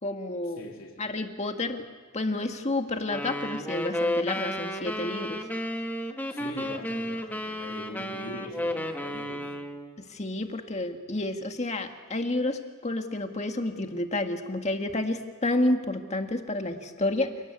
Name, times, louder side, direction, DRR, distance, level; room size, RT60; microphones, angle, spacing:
voice 1, 0.0-0.7 1.0-1.8 2.1-5.4 10.0-17.3, left 2 dB, 30° left, 1.9 m, -30 dB
voice 2, 0.6-1.1 6.3-9.5, left 1 dB, 65° left, 3.8 m, -42 dB
sound 1, 3.1-9.9, left 1 dB, 10° left, 1.5 m, -32 dB
28.0 x 18.5 x 8.4 m
head